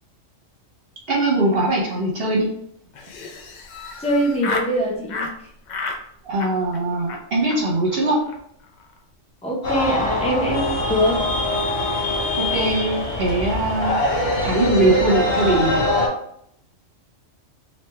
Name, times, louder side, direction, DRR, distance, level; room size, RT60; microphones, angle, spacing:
voice 1, 1.1-2.5 6.3-8.2 12.4-14.0 14.4-15.9, right 2 dB, 50° right, -2 dB, 1.0 m, -21 dB
Laughter, 2.9-4.7 5.1-5.3 5.7-6.0 6.3-6.8 7.1-7.2 7.5-7.6 7.9-8.0 8.2-8.4 8.6-9.0, left 3 dB, 85° left, 0.4 m, -31 dB
voice 2, 4.0-5.3 9.4-11.2, equal, 5° left, -2 dB, 0.5 m, -22 dB
sound 1, 9.6-16.1, left 1 dB, 55° left, 1.1 m, -23 dB
3.3 x 2.8 x 3.3 m, 0.71 s
omnidirectional pair, 1.4 m